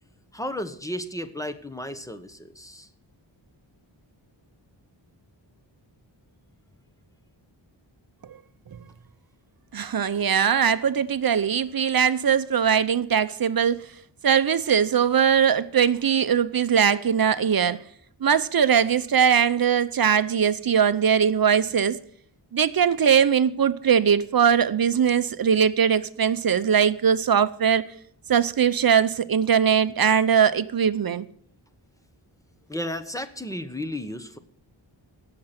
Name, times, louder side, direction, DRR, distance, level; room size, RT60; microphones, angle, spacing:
voice 1, 0.3-2.9 32.7-34.4, left 1 dB, 5° left, 1.0 m, -33 dB
voice 2, 9.7-13.8 14.2-17.8 18.2-22.0 22.5-27.9 28.3-31.2, right 7 dB, 50° right, 0.7 m, -21 dB
16.5 x 6.7 x 5.8 m
wide cardioid pair, 130°, 46 cm